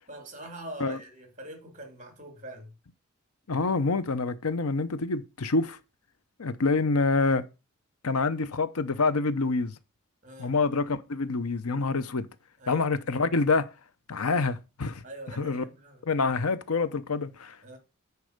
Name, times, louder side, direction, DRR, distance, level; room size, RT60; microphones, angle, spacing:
voice 1, 0.1-2.7 10.2-10.5 12.6-12.8 15.0-16.0 17.6-17.8, right 1 dB, 35° right, 3.0 m, -43 dB
voice 2, 3.5-5.8 6.4-7.4 8.0-9.7 10.4-12.3 12.7-13.7 14.1-15.0 15.4-15.6 16.1-17.8, left 3 dB, 85° left, 0.8 m, -26 dB
9.7 x 4.8 x 6.6 m
head